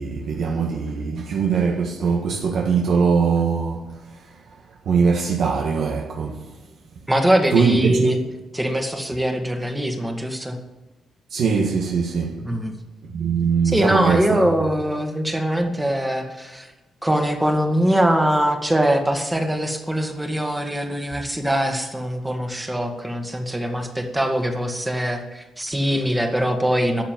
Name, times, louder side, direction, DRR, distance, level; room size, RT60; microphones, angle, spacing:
voice 1, 0.0-3.8 4.1-4.4 4.8-6.4 7.5-8.2 11.3-12.6 13.0-14.5, right 5 dB, 75° right, 1.7 m, -21 dB
voice 2, 7.1-8.2 8.5-10.6 12.4-12.7 13.7-16.7 17.0-27.0, equal, 10° right, 1.8 m, -22 dB
12.5 x 7.4 x 9.2 m
cardioid pair, 125°, 0 cm